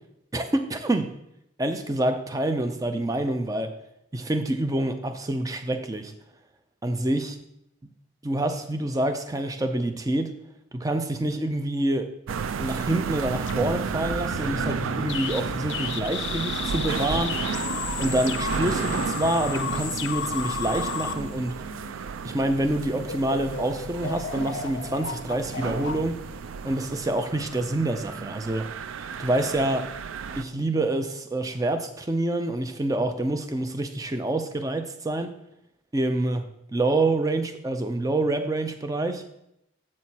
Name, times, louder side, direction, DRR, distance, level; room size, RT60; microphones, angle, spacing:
voice 1, 0.3-1.1 1.6-3.7 4.1-6.1 6.8-7.4 8.2-10.3 10.7-12.1 12.6-17.6 18.0-21.6 22.2-26.2 26.6-28.7 29.2-29.9 30.4-35.3 35.9-36.5 36.7-39.2, right 1 dB, 15° right, 7 dB, 0.4 m, -27 dB
sound 1, 12.3-30.4, right 6 dB, 80° right, 0.4 m, -32 dB
sound 2, 13.2-22.1 22.6-22.8 23.1-27.0, left 7 dB, 55° left, 0.5 m, -34 dB
7.5 x 6.1 x 4.1 m, 0.81 s
head